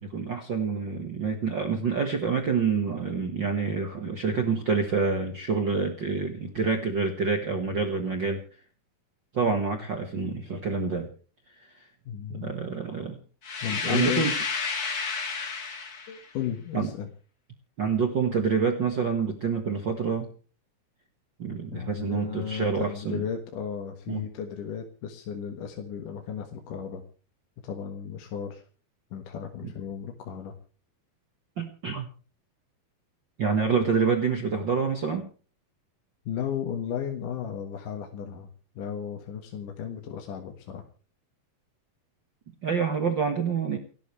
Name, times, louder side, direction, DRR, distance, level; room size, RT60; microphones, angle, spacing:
voice 1, 0.0-8.4 9.3-11.1 11.6-11.7 12.3-13.2 13.8-14.3 16.7-16.9 17.8-20.3 21.4-23.2 24.1-24.2 31.6-32.1 33.4-35.3 42.6-43.8, right 5 dB, 65° right, 5 dB, 1.1 m, -27 dB
voice 2, 12.1-12.5 13.6-14.3 16.1-17.1 21.7-27.0 27.6-28.6 29.1-30.5 36.3-38.5 38.8-40.8, left 8 dB, 65° left, 3 dB, 2.9 m, -34 dB
sound 1, 13.4-16.2, left 4 dB, 40° left, 1.4 m, -31 dB
29.0 x 10.5 x 3.3 m, 0.39 s
omnidirectional pair, 4.5 m